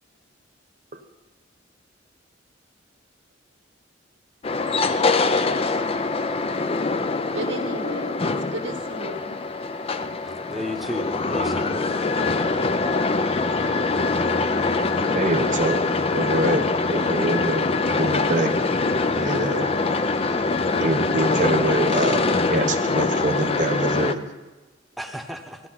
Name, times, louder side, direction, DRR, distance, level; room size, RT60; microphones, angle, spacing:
sound 1, 4.4-24.1, left 3 dB, 30° left, 0.5 m, -23 dB
voice 1, 7.3-9.4, right 2 dB, 90° right, 0 dB, 1.7 m, -34 dB
voice 2, 10.2-11.8 25.0-25.6, left 1 dB, ahead, 4 dB, 1.0 m, -33 dB
voice 3, 15.1-15.8 16.1-16.6 16.9-17.6 18.0-18.6 19.1-19.7 20.2-20.4 20.8-22.2 22.5-24.3, right 2 dB, 40° right, 3 dB, 1.1 m, -25 dB
16.0 x 11.5 x 5.8 m, 1.2 s
head